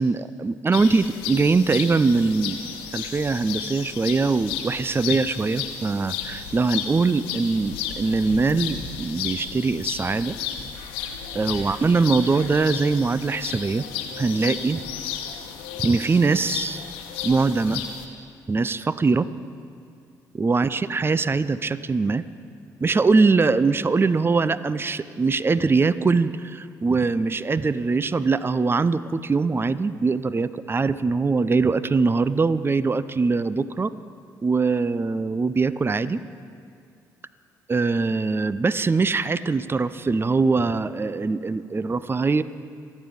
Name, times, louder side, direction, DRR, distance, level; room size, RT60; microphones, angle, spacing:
voice 1, 0.0-10.4 11.3-13.8 14.2-14.8 15.8-16.8 17.2-17.8 18.5-19.3 20.3-22.2 22.8-33.9 34.4-36.2 37.7-42.4, right 4 dB, 25° right, 16 dB, 0.6 m, -22 dB
sound 1, 0.7-18.1, left 8 dB, 80° left, 1.1 m, -33 dB
26.0 x 9.5 x 5.2 m, 2.2 s
hypercardioid pair, 45°, 9 cm